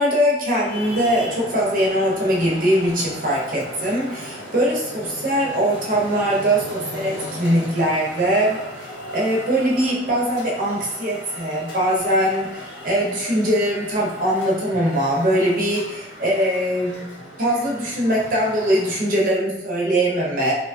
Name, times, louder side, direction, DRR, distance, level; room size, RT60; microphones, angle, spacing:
voice 1, 0.0-8.6 9.1-17.1 17.4-20.5, equal, 50° right, -4 dB, 0.7 m, -21 dB
Traffic noise roadway noise, 0.6-19.3, equal, 85° left, 0.8 m, -37 dB
2.9 x 2.2 x 2.5 m, 0.96 s
head